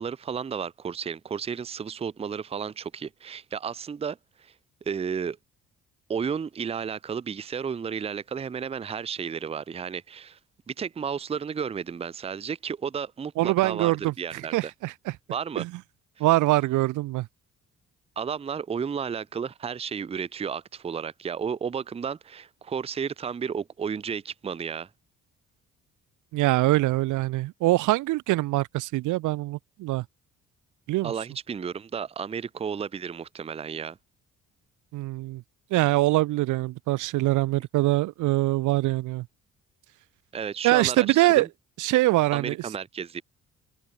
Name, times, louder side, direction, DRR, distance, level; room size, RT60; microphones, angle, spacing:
voice 1, 0.0-4.5 4.9-5.4 6.1-10.4 10.7-14.7 15.3-15.6 18.2-24.9 31.0-34.0 40.3-41.5 42.3-43.2, right 7 dB, 20° right, 0.5 m, -33 dB
voice 2, 13.4-15.2 15.6-15.7 16.2-17.3 26.3-30.1 30.9-31.1 34.9-35.4 35.7-39.3 40.6-41.5 41.8-42.6, right 18 dB, 80° right, 0.6 m, -23 dB
cardioid pair, 90°, 30 cm